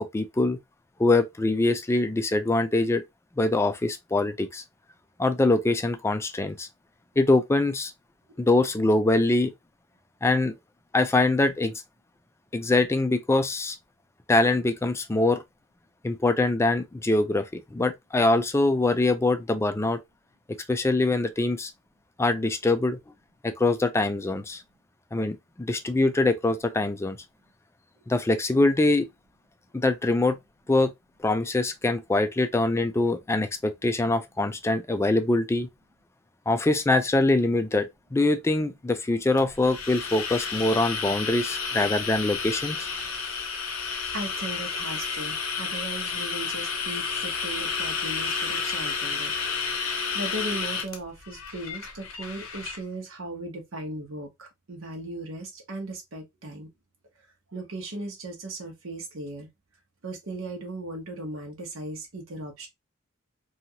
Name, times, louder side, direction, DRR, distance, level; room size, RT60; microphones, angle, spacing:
voice 1, 0.1-0.6 1.0-3.0 3.4-4.6 5.2-6.7 7.2-7.9 8.4-9.5 10.2-10.5 10.9-11.7 12.5-13.8 14.3-15.4 16.0-20.0 20.7-21.7 22.2-23.0 23.4-24.6 25.1-27.2 28.1-29.1 29.7-30.4 30.7-30.9 31.2-35.7 36.5-42.9, left 2 dB, 15° left, 0.3 m, -23 dB
sound 1, 39.4-52.8, left 5 dB, 80° left, 0.8 m, -31 dB
voice 2, 44.1-49.3 49.8-56.7 57.5-59.5 60.0-62.7, right 1 dB, 70° right, 0.8 m, -37 dB
2.9 x 2.3 x 2.7 m
head